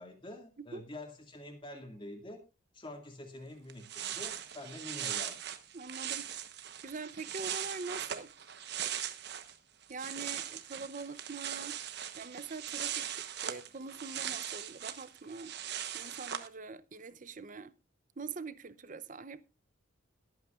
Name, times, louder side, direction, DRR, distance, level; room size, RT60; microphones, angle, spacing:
voice 1, 0.0-2.4 2.7-5.4, left 1 dB, 25° left, 2.2 m, -46 dB
sound 1, 3.4-3.5 3.7-9.5 9.8-16.5, right 10 dB, 55° right, 1.1 m, -40 dB
voice 2, 5.7-6.3 6.8-8.3 9.9-11.8 12.2-13.1 13.4-15.5 15.9-17.7 18.2-19.4, right 4 dB, 40° right, 0.7 m, -43 dB
22.0 x 8.8 x 2.5 m
head